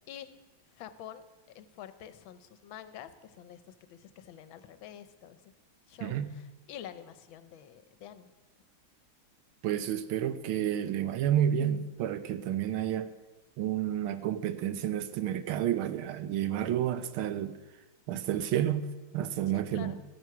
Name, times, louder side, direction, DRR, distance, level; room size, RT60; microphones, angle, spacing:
voice 1, 0.8-1.2 1.5-5.4 5.9-8.3 19.5-20.0, left 10 dB, 75° left, 12 dB, 1.5 m, -47 dB
voice 2, 6.0-6.4 9.6-13.1 13.6-17.6 18.1-18.9 19.1-19.9, right 10 dB, 85° right, 12 dB, 1.6 m, -30 dB
13.0 x 9.4 x 5.8 m, 1.1 s
omnidirectional pair, 2.2 m